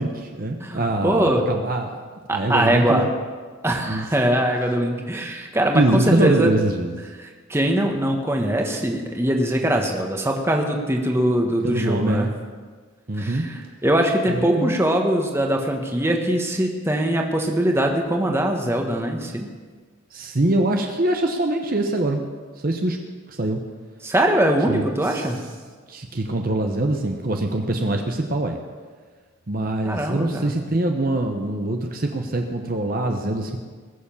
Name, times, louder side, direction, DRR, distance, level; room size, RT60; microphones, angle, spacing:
voice 1, 0.0-2.0 2.3-3.1 3.9-4.0 5.7-6.9 11.6-12.3 13.1-13.5 14.3-14.8 20.1-22.2 22.6-23.0 23.3-23.6 24.7-25.3 25.9-28.6 29.5-33.6, right 1 dB, 40° right, 3 dB, 0.9 m, -23 dB
voice 2, 0.6-1.5 2.3-3.0 3.6-6.5 7.2-12.3 13.2-19.5 24.0-25.4 29.8-30.5, right 1 dB, 10° right, 2 dB, 1.3 m, -22 dB
20.5 x 7.1 x 7.2 m, 1.5 s
head